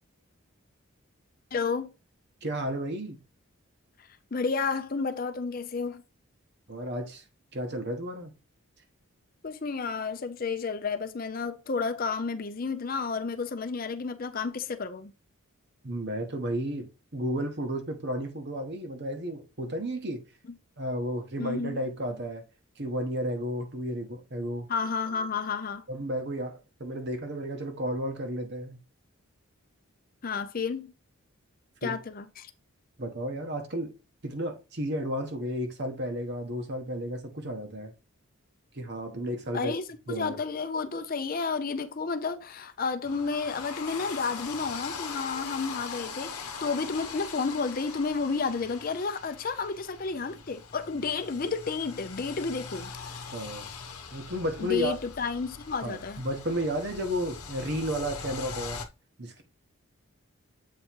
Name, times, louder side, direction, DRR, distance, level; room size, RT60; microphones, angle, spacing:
voice 1, 1.5-1.9 4.3-6.0 9.4-15.1 21.4-21.8 24.7-25.8 30.2-30.9 31.8-32.5 39.5-52.9 54.6-56.2, left 4 dB, 40° left, 0.5 m, -31 dB
voice 2, 2.4-3.2 6.7-7.2 7.5-8.3 15.8-20.2 20.8-22.4 22.8-24.7 25.9-28.8 31.8-32.0 33.0-33.9 34.2-37.9 38.7-39.7 40.1-40.4 53.3-53.7 54.1-55.0 55.8-58.8 59.2-59.4, equal, 50° right, 1.1 m, -32 dB
sound 1, 43.0-58.9, left 5 dB, 85° left, 0.9 m, -41 dB
7.6 x 3.0 x 4.5 m
head